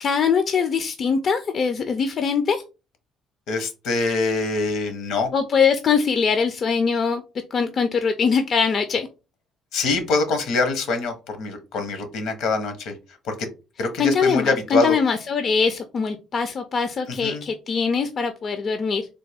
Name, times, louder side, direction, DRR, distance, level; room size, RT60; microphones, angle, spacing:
voice 1, 0.0-2.6 5.3-7.2 7.5-9.1 14.0-19.1, left 5 dB, 50° left, 8 dB, 0.4 m, -22 dB
voice 2, 3.5-5.3 9.7-12.9 13.2-13.5 13.8-15.0 17.1-17.4, left 3 dB, 75° left, 8 dB, 0.8 m, -24 dB
3.3 x 2.2 x 3.4 m, 0.30 s
cardioid pair, 85°, 0 cm